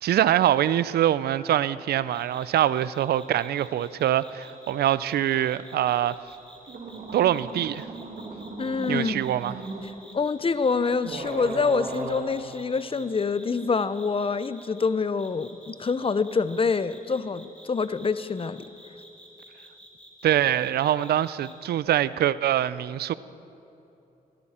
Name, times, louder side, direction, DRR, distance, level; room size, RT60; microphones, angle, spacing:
voice 1, 0.0-6.2 7.1-7.9 8.9-9.5 20.2-23.1, right 11 dB, 80° right, 17 dB, 0.4 m, -24 dB
sound 1, 2.1-14.9 15.2-21.5, equal, 5° left, 3.7 m, -50 dB
sound 2, 6.4-6.5 6.7-9.9 10.6-10.7 11.0-12.2, right 2 dB, 65° right, 2.4 m, -36 dB
voice 2, 8.6-9.2 10.1-18.7, left 4 dB, 35° left, 14 dB, 0.6 m, -26 dB
17.0 x 17.0 x 4.3 m, 2.9 s
cardioid pair, 60°, 16 cm